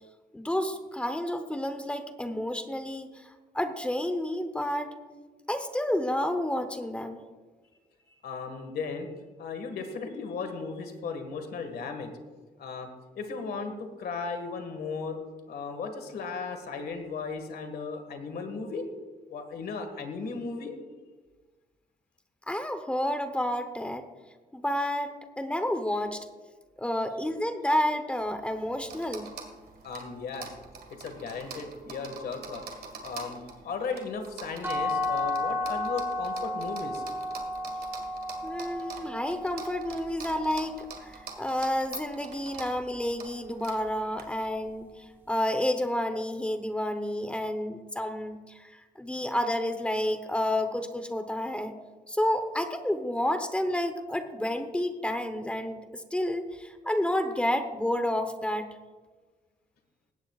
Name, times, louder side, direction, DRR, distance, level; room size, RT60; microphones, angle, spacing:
voice 1, 0.3-3.3 3.5-4.9 5.5-7.2 22.5-24.0 24.5-26.3 26.8-29.3 38.4-51.7 52.1-58.7, left 1 dB, 5° left, 8 dB, 0.9 m, -30 dB
voice 2, 8.1-9.1 9.4-12.1 12.6-12.9 13.2-15.2 15.5-18.8 19.3-20.7 29.8-30.5 30.9-32.6 33.0-37.0, left 4 dB, 90° left, 6 dB, 1.8 m, -36 dB
sound 1, 28.2-44.2, right 5 dB, 85° right, 1.8 m, -46 dB
sound 2, 34.6-40.4, left 2 dB, 15° right, 1.8 m, -33 dB
19.0 x 16.5 x 2.4 m, 1.4 s
wide cardioid pair, 160°, 16 cm